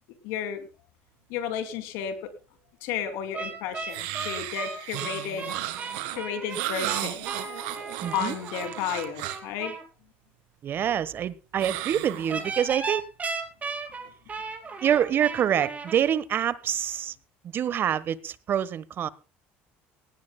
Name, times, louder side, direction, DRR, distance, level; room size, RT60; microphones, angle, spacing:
voice 1, 0.2-0.7 1.3-2.3 2.8-5.6 6.1-7.3 8.1-9.7, left 8 dB, 80° left, 2.7 m, -32 dB
sound 1, 3.3-9.8 12.3-15.9, right 4 dB, 30° right, 4.6 m, -36 dB
sound 2, 3.9-9.5 11.6-12.8, right 14 dB, 85° right, 1.9 m, -34 dB
voice 2, 8.0-8.4 10.6-13.0 14.8-17.1 17.4-19.1, right 9 dB, 50° right, 1.2 m, -26 dB
19.0 x 17.0 x 2.2 m
supercardioid pair, 95°, 5 cm